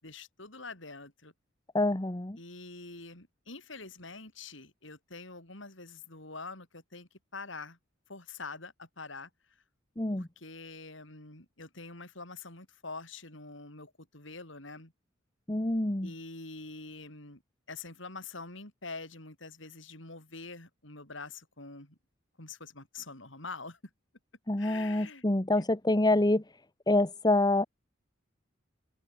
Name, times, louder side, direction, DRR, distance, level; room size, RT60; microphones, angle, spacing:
voice 1, 0.0-1.3 2.4-7.8 8.1-9.3 10.1-14.9 16.0-17.4 17.7-22.0 22.4-23.8 24.6-25.2 25.6-25.7, left 3 dB, 70° left, 7.2 m, -45 dB
voice 2, 1.7-2.4 10.0-10.3 15.5-16.1 24.5-26.4 26.9-27.7, left 2 dB, 20° left, 1.2 m, -26 dB
open air
head